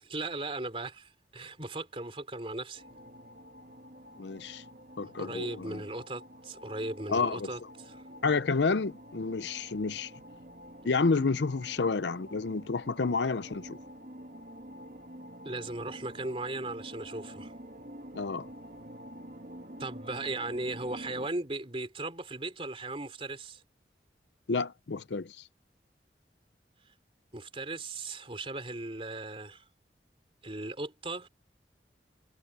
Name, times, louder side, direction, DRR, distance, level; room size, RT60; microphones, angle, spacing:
voice 1, 0.0-2.8 5.0-8.0 15.4-17.5 19.8-23.6 27.3-29.6 30.4-31.3, right 2 dB, 30° right, 3.5 m, -37 dB
sound 1, 2.8-21.3, equal, 50° right, 2.6 m, -48 dB
voice 2, 4.2-4.6 5.0-5.8 7.1-7.5 8.2-10.1 10.8-13.8 18.1-18.5 24.5-25.3, left 4 dB, 85° left, 0.7 m, -30 dB
head